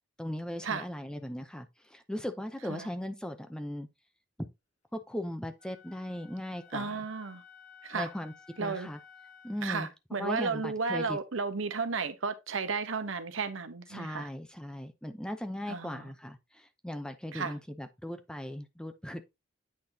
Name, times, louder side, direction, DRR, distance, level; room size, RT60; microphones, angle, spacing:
voice 1, 0.2-3.9 4.4-4.5 4.9-7.0 7.9-8.3 8.6-9.0 9.4-9.9 10.2-11.2 13.9-19.3, left 1 dB, 5° left, 0.6 m, -38 dB
Wind instrument woodwind instrument, 5.6-9.7, left 7 dB, 35° left, 2.3 m, -55 dB
voice 2, 6.7-7.4 7.8-8.1 8.6-8.9 9.6-14.3 15.7-16.1 17.3-17.6, right 4 dB, 75° right, 0.9 m, -33 dB
8.6 x 5.8 x 2.8 m
head